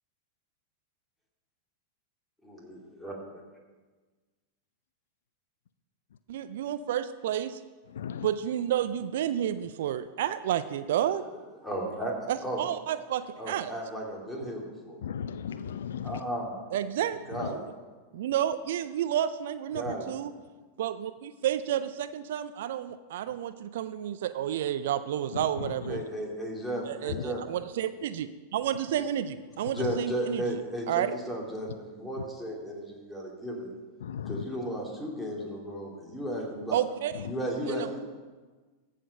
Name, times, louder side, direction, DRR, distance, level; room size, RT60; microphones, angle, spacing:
voice 1, 2.5-3.1 11.6-12.1 12.4-12.6 13.4-15.0 16.0-16.6 17.3-17.6 19.7-20.1 25.9-27.4 28.9-29.0 29.6-33.7 34.2-36.8 37.2-38.0, right 1 dB, 5° left, -2 dB, 2.7 m, -34 dB
voice 2, 6.3-7.6 8.2-11.2 12.3-13.7 16.7-17.6 18.1-20.3 20.8-26.0 26.9-30.4 30.9-31.1 36.7-37.3 37.7-38.0, right 10 dB, 65° right, 13 dB, 0.4 m, -31 dB
voice 3, 8.0-8.3 15.0-16.2 26.0-26.1 27.1-27.2 34.0-34.4, left 8 dB, 70° left, 13 dB, 0.4 m, -35 dB
14.5 x 5.0 x 5.4 m, 1.3 s
figure-of-eight pair, 95°, 0 cm